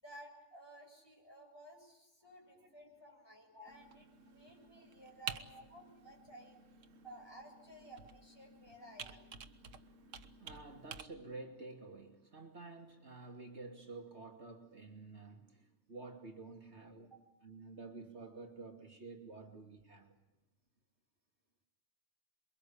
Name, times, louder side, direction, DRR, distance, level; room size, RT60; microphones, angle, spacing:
voice 1, 0.0-6.6 7.0-9.3, right 1 dB, 20° left, 7.2 m, -55 dB
voice 2, 2.2-3.1 3.5-3.8 4.4-4.8 5.5-5.6 6.9-7.0 9.7-20.1, right 3 dB, 60° right, 3.0 m, -51 dB
Computer keyboard, 3.7-11.0, right 6 dB, 85° right, 1.6 m, -50 dB
28.0 x 23.0 x 8.7 m
omnidirectional pair, 1.3 m